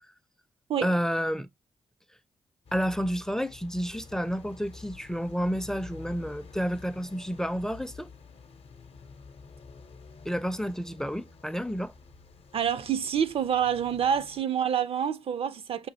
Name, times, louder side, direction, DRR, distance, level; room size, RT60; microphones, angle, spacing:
voice 1, 0.8-1.5 2.7-8.1 10.2-11.9, equal, 5° left, 0.4 m, -30 dB
sound 1, 2.7-14.4, left 4 dB, 60° left, 0.6 m, -49 dB
voice 2, 12.5-15.9, right 8 dB, 60° right, 0.4 m, -27 dB
5.0 x 2.6 x 2.7 m
supercardioid pair, 45°, 11 cm